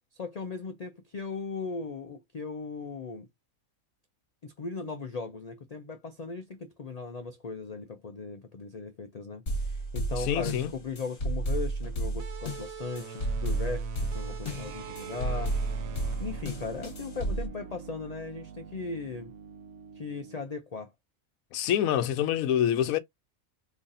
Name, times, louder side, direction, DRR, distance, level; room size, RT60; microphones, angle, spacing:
voice 1, 0.1-3.3 4.4-15.8 16.2-19.3 20.0-20.9, left 4 dB, 75° left, 0.3 m, -38 dB
sound 1, 9.5-17.5, right 2 dB, 50° left, 1.4 m, -32 dB
voice 2, 10.3-10.7 21.5-23.0, left 10 dB, 90° left, 1.0 m, -26 dB
sound 2, 12.2-17.5, right 6 dB, 80° right, 1.1 m, -44 dB
sound 3, 14.4-20.5, right 7 dB, 65° right, 0.9 m, -46 dB
3.9 x 3.1 x 2.6 m
omnidirectional pair, 1.4 m